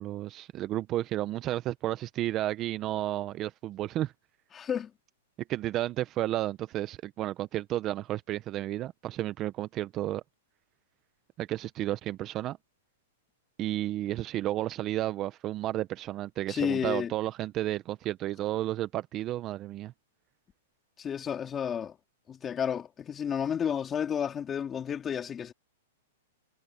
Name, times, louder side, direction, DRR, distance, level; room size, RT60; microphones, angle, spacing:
voice 1, 0.0-4.1 5.5-10.2 11.4-12.6 13.6-19.9, right 14 dB, 30° right, 0.8 m, -32 dB
voice 2, 4.5-4.9 16.5-17.1 21.0-22.0 22.3-25.5, left 8 dB, 20° left, 4.1 m, -31 dB
hypercardioid pair, 145°, 0 cm